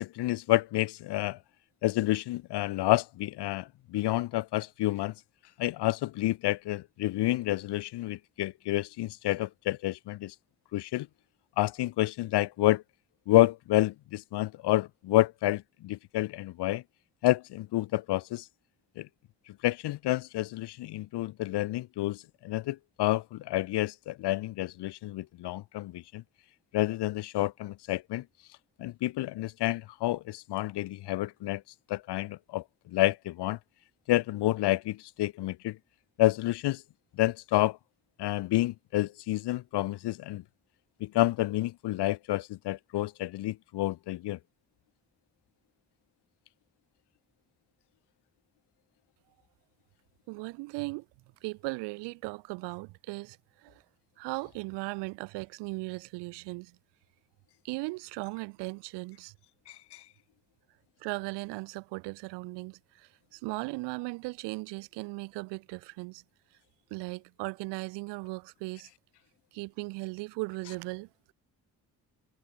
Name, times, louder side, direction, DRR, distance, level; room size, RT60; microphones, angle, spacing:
voice 1, 0.0-1.4 1.8-5.1 5.6-10.3 10.7-11.1 11.6-12.8 13.3-16.8 17.2-18.5 19.0-19.1 19.6-26.2 26.7-28.2 28.8-31.6 31.9-33.6 34.1-35.8 36.2-36.8 37.2-37.8 38.2-40.4 41.0-44.4 59.7-60.0, left 16 dB, 80° left, 2.5 m, -29 dB
voice 2, 50.3-51.0 51.4-53.4 53.6-53.8 54.2-56.7 57.6-59.3 61.0-66.2 66.9-68.9 69.5-71.1, right 25 dB, 85° right, 4.9 m, -37 dB
hypercardioid pair, 45°, 41 cm